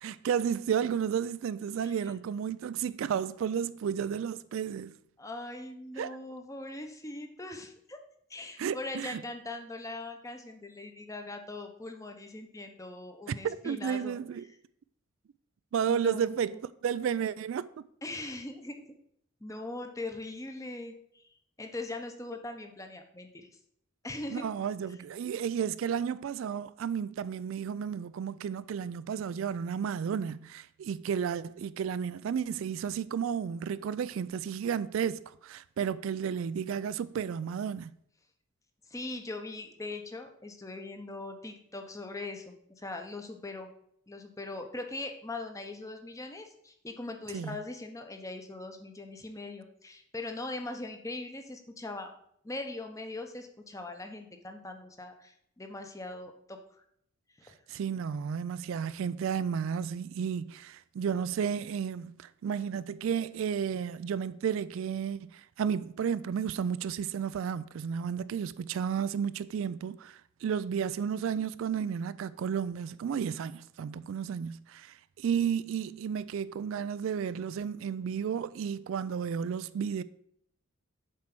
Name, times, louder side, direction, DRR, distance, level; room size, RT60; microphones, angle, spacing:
voice 1, 0.0-4.9 6.0-6.2 8.6-9.2 13.3-14.4 15.7-17.8 24.3-37.9 47.3-47.6 57.7-80.0, right 7 dB, 65° right, 0.3 m, -32 dB
voice 2, 5.2-8.0 8.3-14.2 15.9-16.6 18.0-18.8 19.4-21.3 21.6-23.5 24.0-24.5 38.9-43.7 44.1-52.1 52.4-56.6 57.4-57.5, left 2 dB, 15° left, 0.8 m, -41 dB
7.4 x 4.5 x 6.0 m
head